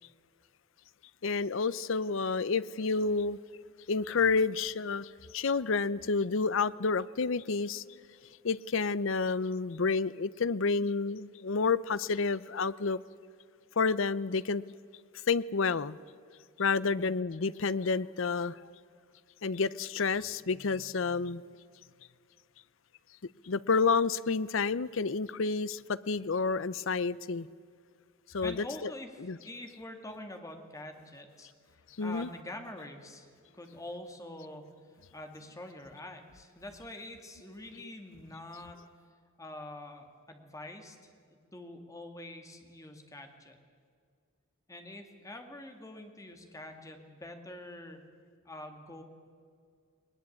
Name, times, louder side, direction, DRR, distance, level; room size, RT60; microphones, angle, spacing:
voice 1, 1.2-3.4 3.9-7.8 8.4-13.0 13.8-14.6 15.1-16.0 16.6-18.6 19.4-21.4 23.4-27.5 28.3-28.9 29.2-29.4 32.0-32.3 37.7-37.8, left 4 dB, 65° left, 0.6 m, -29 dB
voice 2, 28.4-31.5 32.0-34.7 35.1-38.8 39.4-41.0 41.3-43.6 44.7-48.0 48.5-49.0, left 1 dB, 15° left, 2.1 m, -45 dB
20.5 x 20.0 x 8.5 m
head